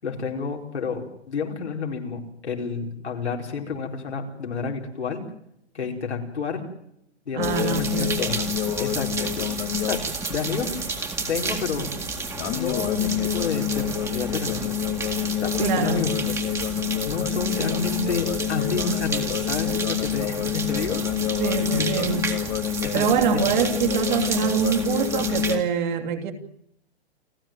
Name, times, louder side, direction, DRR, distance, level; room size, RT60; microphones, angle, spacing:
voice 1, 0.0-5.2 5.7-6.6 7.2-8.4 8.8-10.0 10.3-10.8 11.3-12.0 12.5-14.8 15.4-16.3 17.1-21.0 21.7-22.1 22.8-23.4, left 5 dB, 85° left, 4.7 m, -30 dB
voice 2, 7.3-8.2 15.6-16.1 21.4-22.3 22.9-26.3, right 8 dB, 45° right, 2.9 m, -25 dB
sound 1, 7.4-10.9 12.4-25.6, left 12 dB, 25° left, 1.2 m, -28 dB
sound 2, 7.4-25.6, right 3 dB, 10° right, 2.1 m, -31 dB
29.0 x 12.0 x 9.1 m
hypercardioid pair, 140°, 33 cm